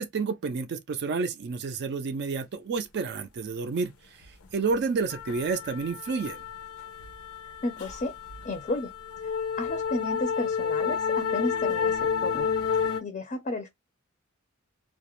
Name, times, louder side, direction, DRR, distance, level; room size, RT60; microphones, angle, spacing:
voice 1, 0.0-4.3 4.5-6.4, right 4 dB, 50° right, 0.4 m, -30 dB
sound 1, 4.2-4.4 4.7-13.0, left 6 dB, 85° left, 0.6 m, -30 dB
voice 2, 7.6-8.1 8.4-8.9 9.2-12.5 13.0-13.7, left 2 dB, 35° left, 0.5 m, -33 dB
2.4 x 2.0 x 2.9 m
head